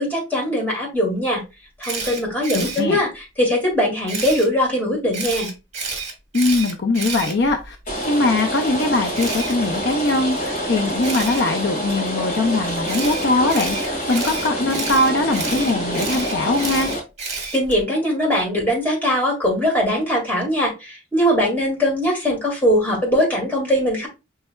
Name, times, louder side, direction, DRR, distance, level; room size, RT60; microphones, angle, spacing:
voice 1, 0.0-1.4 1.8-5.5 17.5-24.1, equal, 10° left, -2 dB, 1.9 m, -21 dB
Camera, 1.8-2.8 4.1-4.5 5.1-7.9 9.1-9.5 11.0-11.4 12.9-17.8, right 4 dB, 35° right, 1.3 m, -30 dB
voice 2, 2.5-3.0 6.3-7.8 8.1-16.9, left 2 dB, 60° left, 5 dB, 0.5 m, -21 dB
Rain, 7.9-17.0, equal, 45° left, 2.0 m, -26 dB
5.4 x 3.3 x 2.2 m, 0.26 s
head